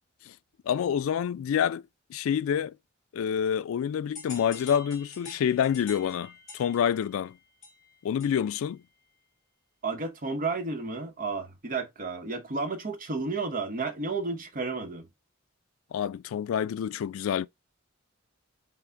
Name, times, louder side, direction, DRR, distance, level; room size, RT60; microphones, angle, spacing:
voice 1, 0.7-1.8 2.1-2.8 3.1-7.4 8.0-8.8 15.9-17.5, left 8 dB, 80° left, 0.3 m, -27 dB
sound 1, 4.1-8.7, left 4 dB, 35° left, 2.1 m, -47 dB
voice 2, 9.8-15.1, right 3 dB, 40° right, 0.9 m, -32 dB
5.7 x 2.1 x 3.7 m
head